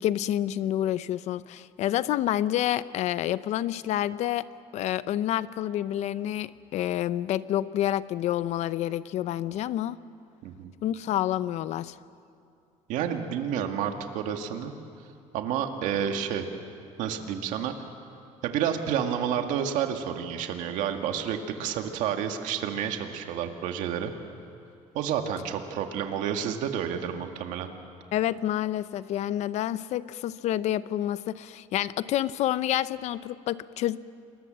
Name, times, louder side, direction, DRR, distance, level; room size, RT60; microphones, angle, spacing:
voice 1, 0.0-10.0 10.8-11.9 28.1-34.0, left 12 dB, 60° left, 16 dB, 0.7 m, -28 dB
voice 2, 12.9-14.7 15.3-16.5 17.0-17.7 18.4-24.1 24.9-27.7, right 8 dB, 75° right, 5 dB, 2.0 m, -30 dB
29.0 x 21.0 x 7.6 m, 2.6 s
cardioid pair, 135°, 13 cm